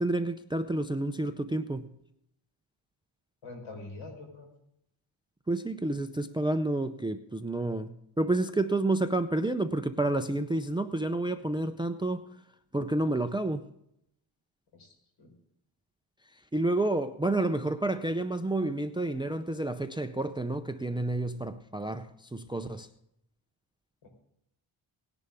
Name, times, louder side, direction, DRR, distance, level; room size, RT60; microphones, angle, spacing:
voice 1, 0.0-1.9 5.5-7.9 8.2-12.2 12.7-13.7 16.5-22.9, right 2 dB, 10° right, 0.5 m, -29 dB
voice 2, 3.4-4.5 14.7-15.4 24.0-24.1, left 3 dB, 65° left, 4.8 m, -45 dB
18.5 x 10.5 x 3.6 m
wide cardioid pair, 140°, 50 cm